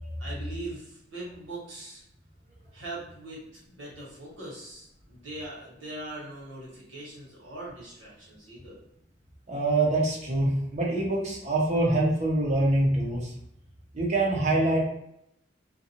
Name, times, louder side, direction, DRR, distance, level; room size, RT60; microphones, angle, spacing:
voice 1, 0.2-2.0 2.7-8.8, right 2 dB, 80° right, -6 dB, 1.3 m, -41 dB
voice 2, 9.5-13.3 13.9-14.8, right 2 dB, 40° right, -2 dB, 0.7 m, -25 dB
2.5 x 2.3 x 2.8 m, 0.78 s
head